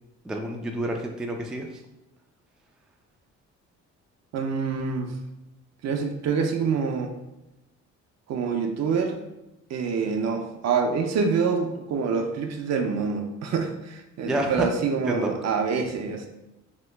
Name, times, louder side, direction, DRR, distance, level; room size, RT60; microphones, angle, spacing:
voice 1, 0.2-1.8 14.2-14.7 15.1-15.3, right 1 dB, ahead, 2 dB, 0.3 m, -29 dB
voice 2, 4.3-5.1 5.8-7.1 8.3-9.2 9.7-16.3, right 5 dB, 60° right, 4 dB, 0.5 m, -26 dB
2.9 x 2.2 x 3.3 m, 0.95 s
cardioid pair, 90°, 30 cm